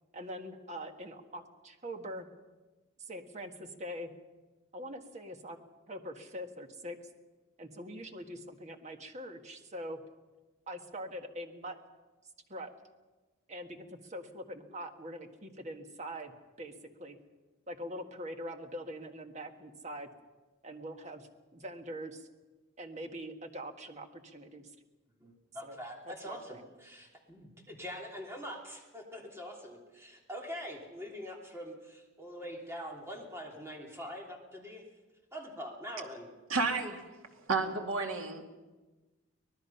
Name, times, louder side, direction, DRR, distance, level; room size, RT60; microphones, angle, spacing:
voice 1, 0.1-2.3 3.0-4.1 4.7-5.6 5.9-7.0 7.6-10.0 10.7-11.8 12.5-12.7 13.5-16.7 17.0-17.2 17.7-20.1 20.6-22.3 22.8-24.7 25.6-25.8 26.2-26.6, equal, 35° right, 5 dB, 1.6 m, -43 dB
voice 2, 25.2-34.8 35.3-36.3, equal, 15° right, 0 dB, 3.1 m, -44 dB
voice 3, 36.5-37.0 37.4-38.4, right 4 dB, 80° right, 3 dB, 2.5 m, -31 dB
24.5 x 19.0 x 5.7 m, 1.2 s
head